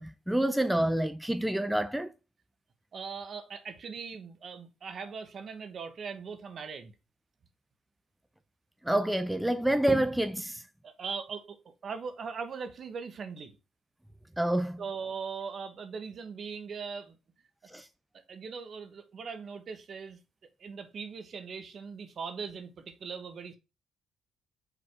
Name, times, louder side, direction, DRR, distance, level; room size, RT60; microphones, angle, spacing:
voice 1, 0.0-2.1 8.8-10.6 14.4-14.8 17.7-17.9, right 1 dB, 5° right, 0.5 m, -28 dB
voice 2, 2.9-6.9 10.8-13.6 14.8-17.2 18.1-20.2 20.6-23.6, right 5 dB, 55° right, 1.2 m, -40 dB
5.1 x 4.1 x 4.8 m
supercardioid pair, 75°, 0 cm